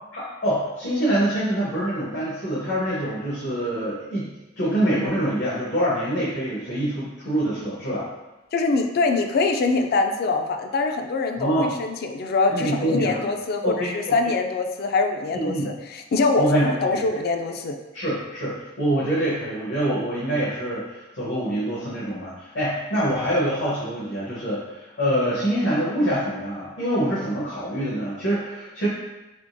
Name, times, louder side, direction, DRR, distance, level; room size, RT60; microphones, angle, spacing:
voice 1, 0.1-4.3 4.6-8.1 11.4-11.7 12.5-13.3 13.6-13.9 15.3-15.7 16.4-16.9 17.9-28.9, right 1 dB, 80° left, -9 dB, 1.0 m, -25 dB
voice 2, 8.5-17.8, left 3 dB, 55° left, 5 dB, 0.3 m, -24 dB
3.6 x 2.8 x 2.6 m, 1.1 s
head